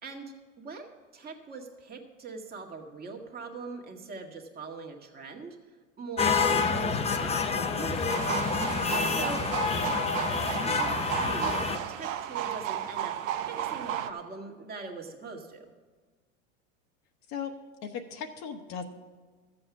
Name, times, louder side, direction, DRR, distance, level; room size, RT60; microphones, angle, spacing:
voice 1, 0.0-0.9 1.1-5.6 6.0-8.3 9.1-9.5 9.8-13.1 13.5-15.7, right 4 dB, 25° right, 2 dB, 1.8 m, -42 dB
sound 1, 6.2-11.8, left 5 dB, 15° left, 0.8 m, -28 dB
sound 2, 8.1-14.1, right 11 dB, 85° right, 0.9 m, -33 dB
voice 2, 17.8-18.8, left 7 dB, 45° left, 4 dB, 1.2 m, -37 dB
13.5 x 7.8 x 6.0 m, 1.4 s
hypercardioid pair, 110°, 38 cm